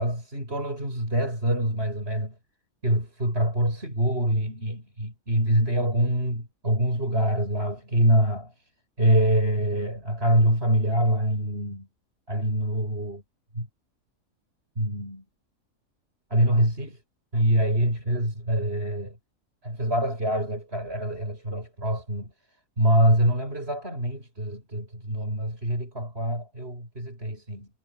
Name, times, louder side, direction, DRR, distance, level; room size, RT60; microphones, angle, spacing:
voice 1, 0.0-2.3 2.8-8.5 9.0-11.9 12.3-13.2 13.5-13.7 14.8-15.2 16.3-17.0 17.3-19.2 19.6-22.3 22.8-27.7, right 1 dB, 45° right, 8.3 m, -25 dB
omnidirectional pair, 1.5 m